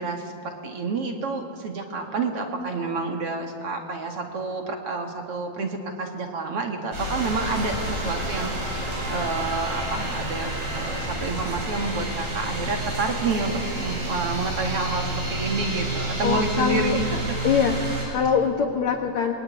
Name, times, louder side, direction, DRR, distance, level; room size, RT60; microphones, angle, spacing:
voice 1, 0.0-17.4, right 3 dB, 45° right, 3 dB, 2.1 m, -29 dB
sound 1, 6.9-18.0, right 1 dB, 65° right, 9.1 m, -29 dB
voice 2, 16.2-17.0 17.4-19.3, left 6 dB, 60° left, 2 dB, 2.1 m, -23 dB
27.0 x 21.5 x 9.5 m, 2.7 s
omnidirectional pair, 4.9 m